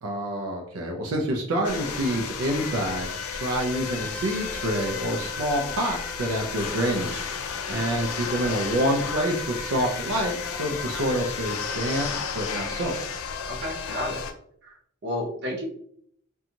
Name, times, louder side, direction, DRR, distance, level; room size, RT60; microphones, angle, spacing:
voice 1, 0.0-7.2 7.7-12.9, right 1 dB, 90° right, 0 dB, 0.5 m, -27 dB
sound 1, 1.6-14.3, left 6 dB, 80° left, 0.4 m, -33 dB
voice 2, 13.5-14.2 14.6-14.8 15.0-15.6, left 1 dB, 55° right, -1 dB, 0.8 m, -32 dB
2.6 x 2.3 x 2.8 m, 0.66 s
head